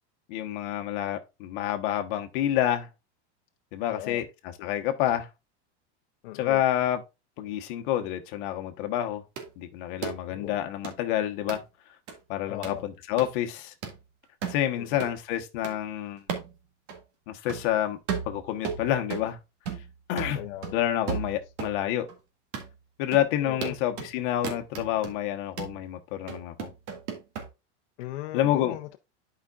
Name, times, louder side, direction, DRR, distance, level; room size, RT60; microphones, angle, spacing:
voice 1, 0.3-2.9 3.7-4.3 4.6-5.3 6.3-7.0 7.4-9.2 9.6-11.6 12.3-13.7 14.5-16.2 17.3-18.0 18.3-19.4 20.1-20.4 20.7-22.1 23.0-26.7 28.3-28.8, left 12 dB, 45° left, 1.1 m, -28 dB
voice 2, 3.9-4.2 6.2-6.6 10.3-10.6 12.5-12.8 14.8-15.1 20.4-20.8 23.4-23.8 28.0-29.0, left 14 dB, 70° left, 0.7 m, -38 dB
sound 1, 9.4-9.5 10.0-10.2 10.8-11.0 11.5-11.6 12.1-12.2 12.6-12.8 13.2-13.3 13.8-14.0 14.4-14.6 15.0-15.1 15.6-15.8 16.3-16.5 16.9-17.0 17.5-17.7 18.1-19.3 19.7-19.9 20.2-21.8 22.1-22.2 22.5-22.7 23.1-23.3 23.6-24.1 24.4-25.1 25.6-25.8 26.3-27.5, right 6 dB, 75° right, 2.0 m, -34 dB
11.0 x 5.1 x 2.4 m
supercardioid pair, 175°, 35 cm